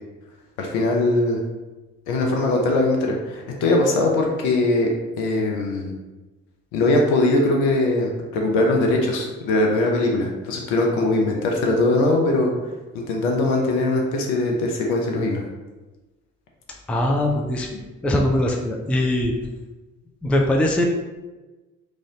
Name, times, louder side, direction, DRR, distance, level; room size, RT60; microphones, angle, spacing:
voice 1, 0.6-1.4 2.1-4.9 5.2-5.9 6.7-12.5 13.1-15.4, left 2 dB, 70° left, 0 dB, 0.7 m, -21 dB
voice 2, 16.9-19.3 20.2-20.8, left 1 dB, 5° left, 1 dB, 0.4 m, -21 dB
3.2 x 2.6 x 3.7 m, 1.2 s
figure-of-eight pair, 40°, 44 cm